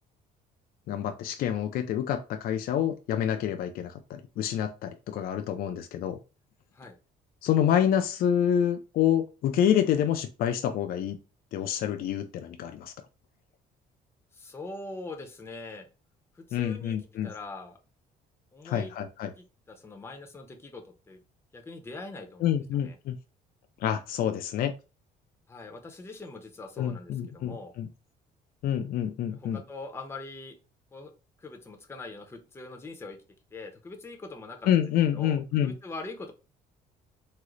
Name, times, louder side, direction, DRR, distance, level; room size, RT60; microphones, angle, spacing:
voice 1, 0.9-6.2 7.4-11.2 11.5-12.9 16.5-17.3 18.6-19.3 22.4-23.2 23.8-24.7 26.8-27.9 28.6-29.6 34.7-35.7, left 10 dB, 60° left, 7 dB, 0.4 m, -27 dB
voice 2, 14.3-15.9 16.3-17.0 17.2-17.8 18.5-18.9 19.4-21.2 21.5-23.0 25.5-27.7 29.3-30.6 30.9-31.1 31.4-33.2 33.5-34.7 35.1-36.3, left 3 dB, 15° left, 3 dB, 0.6 m, -42 dB
3.7 x 2.0 x 3.0 m, 0.31 s
cardioid pair, 110°, 17 cm